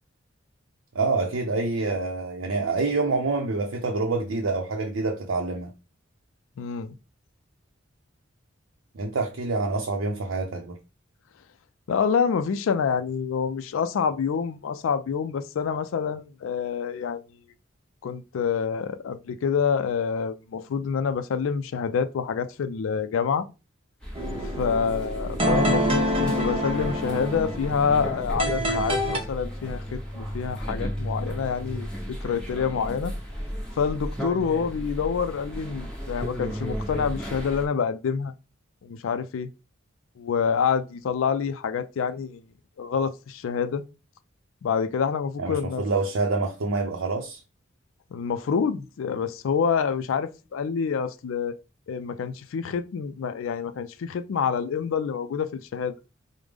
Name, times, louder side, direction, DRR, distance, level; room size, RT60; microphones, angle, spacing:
voice 1, 0.9-5.7 8.9-10.8 45.4-47.4, right 3 dB, 85° right, 0.6 m, -27 dB
voice 2, 6.6-6.9 11.9-17.2 18.0-23.5 24.6-31.9 32.2-33.1 33.8-38.3 38.8-39.5 40.2-42.4 42.8-43.8 44.6-45.8 48.1-51.5 51.9-55.9, left 6 dB, 80° left, 0.4 m, -27 dB
sound 1, 24.0-37.7, equal, 5° left, 1.0 m, -34 dB
sound 2, 24.2-29.2, equal, 30° right, 0.7 m, -27 dB
4.9 x 2.1 x 3.4 m
head